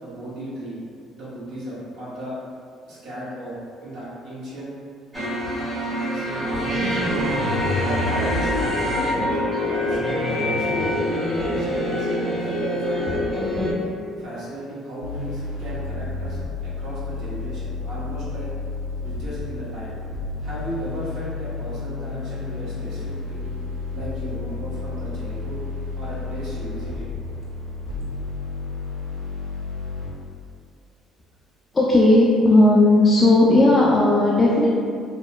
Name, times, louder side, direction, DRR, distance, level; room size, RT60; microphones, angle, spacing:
voice 1, 0.0-0.8 1.1-2.4 2.9-4.7 6.1-7.1 7.7-11.0 11.3-13.2 14.2-18.5 19.0-20.0 20.4-23.5 23.9-25.6 26.0-27.1, right 1 dB, 65° right, -8 dB, 0.9 m, -36 dB
sound 1, 5.1-13.7, left 1 dB, 25° right, 1.4 m, -24 dB
sound 2, 15.0-30.1, left 3 dB, 90° left, 0.6 m, -31 dB
voice 2, 31.7-34.7, left 2 dB, 25° left, -5 dB, 0.4 m, -15 dB
2.8 x 2.0 x 2.3 m, 2.3 s
hypercardioid pair, 60°, 0 cm